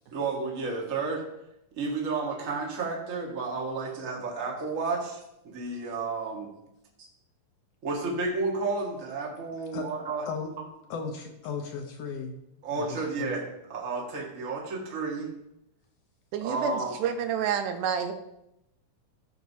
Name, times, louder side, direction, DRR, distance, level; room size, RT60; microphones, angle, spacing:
voice 1, 0.1-1.2 1.8-6.5 7.0-7.1 7.8-10.3 12.6-13.4 13.7-15.3 16.4-16.9, right 3 dB, 50° right, -2 dB, 1.0 m, -31 dB
voice 2, 10.9-12.3 12.7-13.4, left 5 dB, 70° left, 4 dB, 1.5 m, -36 dB
voice 3, 16.3-18.1, right 7 dB, 85° right, 7 dB, 2.3 m, -29 dB
14.0 x 5.9 x 2.8 m, 0.86 s
omnidirectional pair, 3.6 m